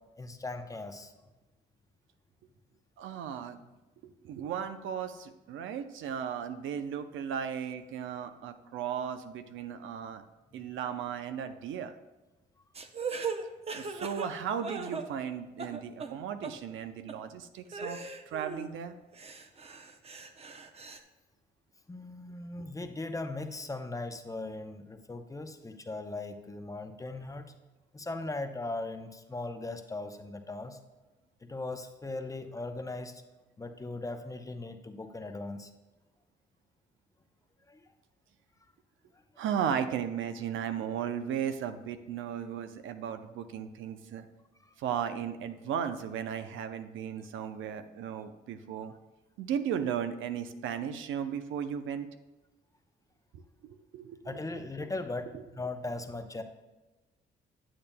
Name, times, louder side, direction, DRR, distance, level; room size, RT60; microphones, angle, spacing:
voice 1, 0.2-1.1 21.9-27.4 27.9-30.8 31.4-33.2 33.6-35.7 37.7-37.8 44.6-44.7 54.2-56.4, left 2 dB, 15° left, 7 dB, 0.6 m, -39 dB
voice 2, 3.0-3.6 4.0-10.2 10.5-11.9 13.7-18.0 18.3-18.9 39.4-44.3 44.8-48.9 49.4-52.1 53.6-54.2, right 8 dB, 80° right, 9 dB, 0.6 m, -35 dB
sound 1, 12.7-15.3 15.6-16.1 16.4-16.5 17.1-17.2 17.7-18.7 19.1-21.0, right 5 dB, 30° right, 0.6 m, -38 dB
8.7 x 8.5 x 2.2 m, 1.1 s
cardioid pair, 90°, 20 cm